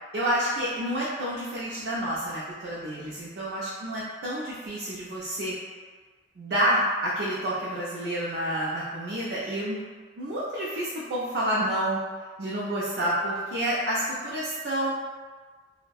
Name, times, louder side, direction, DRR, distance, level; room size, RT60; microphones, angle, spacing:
voice 1, 0.1-5.5 6.4-9.8 10.2-12.0 12.4-14.9, right 1 dB, 65° right, -7 dB, 0.4 m, -29 dB
2.6 x 2.1 x 2.3 m, 1.4 s
head